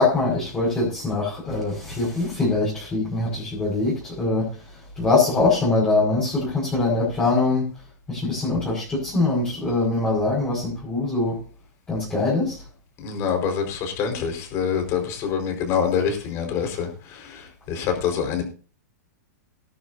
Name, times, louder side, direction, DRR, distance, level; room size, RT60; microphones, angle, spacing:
voice 1, 0.0-4.5 5.0-7.7 8.1-11.4 11.9-12.6, left 3 dB, 10° left, 5.8 m, -23 dB
voice 2, 13.0-18.4, left 7 dB, 30° left, 4.8 m, -26 dB
19.5 x 11.0 x 2.7 m
supercardioid pair, 160°, 9 cm